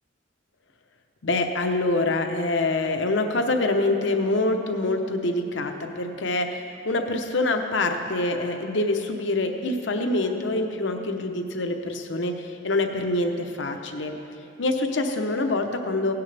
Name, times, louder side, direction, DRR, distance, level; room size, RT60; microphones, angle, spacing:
voice 1, 1.2-12.3 12.6-14.1 14.6-16.1, left 2 dB, 65° left, 5 dB, 0.9 m, -25 dB
17.0 x 10.5 x 3.4 m, 2.7 s
head